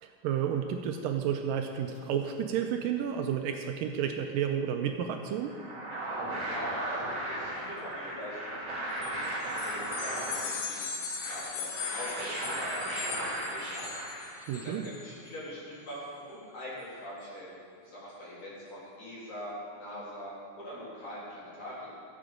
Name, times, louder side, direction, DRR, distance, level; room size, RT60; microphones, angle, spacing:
voice 1, 0.0-5.5 14.5-14.9, right 8 dB, 80° right, 5 dB, 2.1 m, -31 dB
sound 1, 5.4-14.7, right 1 dB, 45° right, 4.2 m, -36 dB
voice 2, 6.1-14.0 14.5-17.5 17.8-19.5 19.8-21.9, equal, 45° left, -8 dB, 4.0 m, -43 dB
sound 2, 9.0-15.2, left 6 dB, 80° left, 3.0 m, -39 dB
16.5 x 7.8 x 5.1 m, 2.4 s
omnidirectional pair, 4.2 m